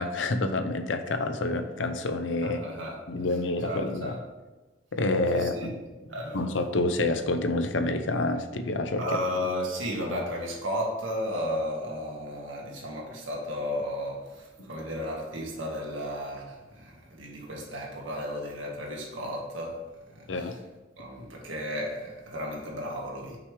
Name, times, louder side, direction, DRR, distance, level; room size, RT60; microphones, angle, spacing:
voice 1, 0.0-2.6 3.1-4.2 4.9-5.7 6.3-9.2 14.6-14.7 20.3-20.6, left 2 dB, 70° left, 7 dB, 0.6 m, -28 dB
voice 2, 2.4-3.0 3.6-4.2 5.3-5.7 6.1-6.4 9.0-19.8 20.1-20.6 21.0-23.4, equal, 85° right, -2 dB, 1.8 m, -34 dB
6.0 x 4.9 x 4.8 m, 1.2 s
head